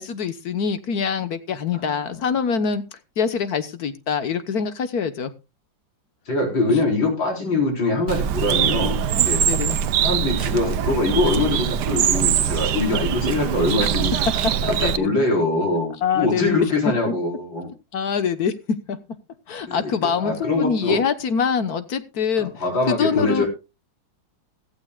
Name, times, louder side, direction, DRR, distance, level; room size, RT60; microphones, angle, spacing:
voice 1, 0.0-2.8 3.2-5.3 9.0-9.1 9.5-9.8 14.6-15.1 16.0-16.6 17.1-17.2 17.9-19.0 19.5-22.5 22.9-23.4, left 6 dB, 60° left, 11 dB, 1.5 m, -24 dB
voice 2, 6.3-9.4 10.0-14.1 14.7-17.7 19.7-21.0 22.4-23.5, left 2 dB, 80° left, 0 dB, 5.1 m, -23 dB
Bird, 8.1-15.0, right 9 dB, 65° right, 1.3 m, -22 dB
15.5 x 15.0 x 2.3 m, 0.29 s
omnidirectional pair, 2.0 m